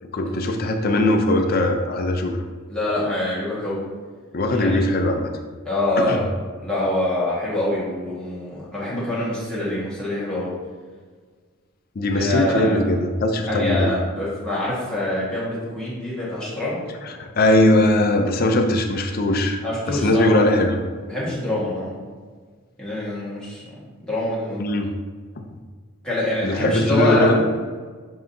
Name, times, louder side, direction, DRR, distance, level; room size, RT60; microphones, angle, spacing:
voice 1, 0.0-2.4 4.3-5.3 6.0-6.2 12.0-13.9 17.0-19.6 19.9-20.8 24.6-24.9 25.4-25.5 26.4-27.5, left 1 dB, 40° left, 4 dB, 0.4 m, -20 dB
voice 2, 2.7-3.8 4.5-4.8 5.6-6.3 6.6-10.5 12.1-12.8 13.5-16.8 19.6-20.5 21.0-22.1 22.8-23.6 24.0-24.6 26.0-27.3, left 1 dB, 5° left, -9 dB, 1.4 m, -25 dB
7.2 x 2.8 x 2.6 m, 1.5 s
head